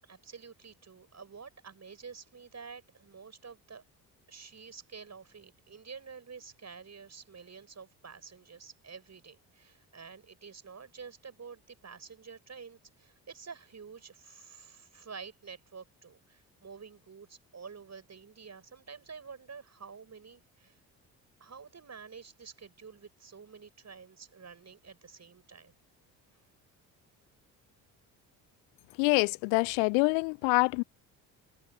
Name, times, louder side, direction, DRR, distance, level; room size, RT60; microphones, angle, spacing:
voice 1, 0.0-3.8 4.3-20.7 21.4-25.7, right 5 dB, 35° right, 7.8 m, -49 dB
voice 2, 29.0-30.8, left 40 dB or more, 60° left, 0.9 m, -26 dB
figure-of-eight pair, 45°, 49 cm